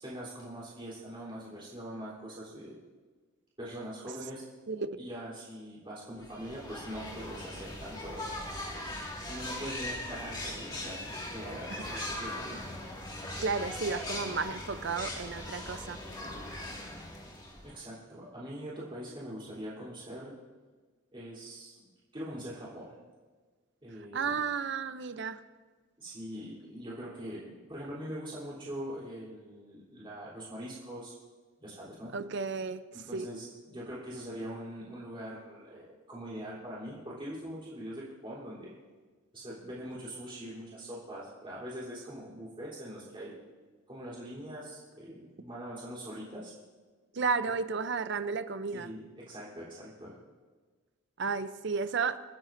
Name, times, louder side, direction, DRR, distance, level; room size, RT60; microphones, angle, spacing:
voice 1, 0.0-2.8 3.6-4.4 5.0-8.3 9.3-11.0 11.3-12.6 17.6-20.3 21.1-21.7 22.1-23.0 23.8-24.4 26.0-31.1 31.6-32.1 32.9-38.7 39.3-43.3 43.9-46.5 48.7-49.0 49.3-50.2, equal, 25° right, -7 dB, 3.6 m, -42 dB
voice 2, 4.7-5.1 11.7-11.8 13.4-16.0 24.1-25.4 32.1-32.8 33.1-33.3 47.1-48.9 51.2-52.2, right 5 dB, 60° right, 12 dB, 0.6 m, -33 dB
sound 1, 6.2-17.8, left 1 dB, 20° left, 2.1 m, -40 dB
27.5 x 9.4 x 2.6 m, 1.4 s
head